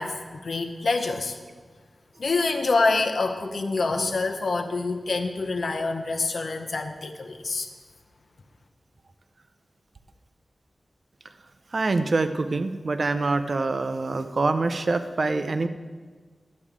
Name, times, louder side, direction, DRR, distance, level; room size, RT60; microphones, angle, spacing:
voice 1, 0.0-1.4 2.2-7.7, left 3 dB, 75° left, 5 dB, 0.8 m, -26 dB
voice 2, 11.7-15.7, right 3 dB, 60° right, 10 dB, 0.6 m, -25 dB
12.0 x 8.5 x 3.7 m, 1.4 s
wide cardioid pair, 60°, 0 cm